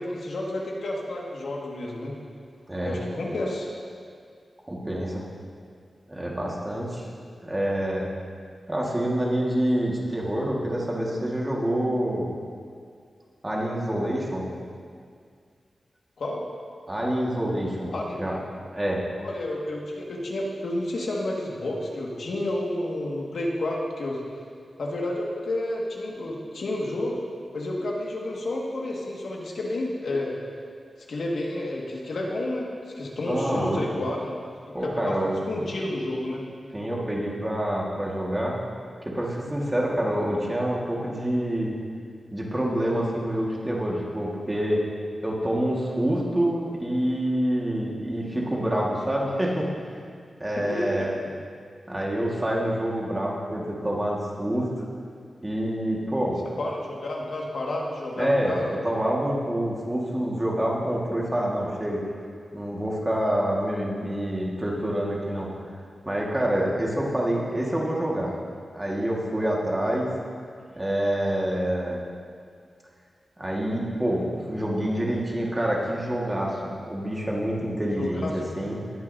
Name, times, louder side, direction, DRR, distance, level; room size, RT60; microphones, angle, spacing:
voice 1, 0.0-2.2 2.8-3.7 16.2-16.4 17.9-18.2 19.2-24.2 24.8-27.3 27.5-30.4 31.1-32.7 32.9-34.4 34.8-35.1 35.5-36.4 50.6-51.1 56.6-58.7 77.9-78.6, left 1 dB, 75° left, -3 dB, 1.7 m, -30 dB
voice 2, 2.7-3.0 4.7-5.2 6.1-7.1 7.4-8.1 8.7-12.3 13.4-14.5 16.9-18.4 18.7-19.0 33.3-33.9 34.7-35.4 36.7-38.6 39.0-41.8 42.3-44.8 45.2-49.7 50.4-51.1 51.9-54.8 55.4-56.4 58.2-58.5 58.8-62.0 62.5-65.5 66.1-68.3 68.7-70.1 70.8-72.0 73.4-78.8, right 1 dB, 15° right, -3 dB, 1.6 m, -27 dB
18.5 x 9.5 x 2.7 m, 2.2 s
wide cardioid pair, 145°, 0 cm